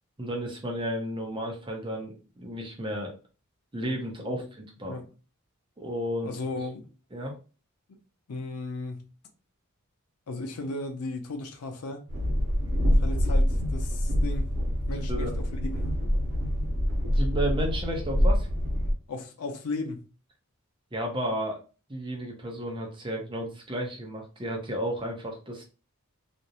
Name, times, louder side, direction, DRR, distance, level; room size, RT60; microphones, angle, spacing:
voice 1, 0.2-3.1 3.7-5.0 5.8-6.3 7.1-7.4 14.9-15.3 17.1-18.5 20.9-21.6 21.9-25.6, equal, 20° right, 0.6 m, -33 dB
voice 2, 6.2-6.9 8.3-9.1 10.3-12.0 12.9-14.5 14.9-15.5 15.8-15.9 19.1-20.0, left 2 dB, 85° left, 0.5 m, -35 dB
Train, 12.1-18.9, equal, 80° right, 0.8 m, -26 dB
2.5 x 2.0 x 2.8 m
head